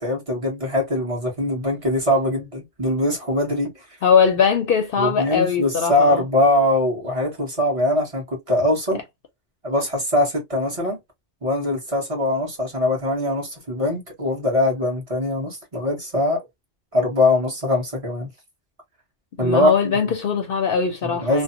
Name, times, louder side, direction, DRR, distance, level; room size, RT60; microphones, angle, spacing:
voice 1, 0.0-3.7 5.0-9.0 9.6-11.0 11.4-16.4 16.9-18.3 19.4-19.9 21.0-21.4, left 1 dB, 30° right, 1.1 m, -22 dB
voice 2, 4.0-6.2 19.4-21.4, left 6 dB, 60° left, 0.7 m, -20 dB
2.6 x 2.1 x 2.5 m
omnidirectional pair, 1.2 m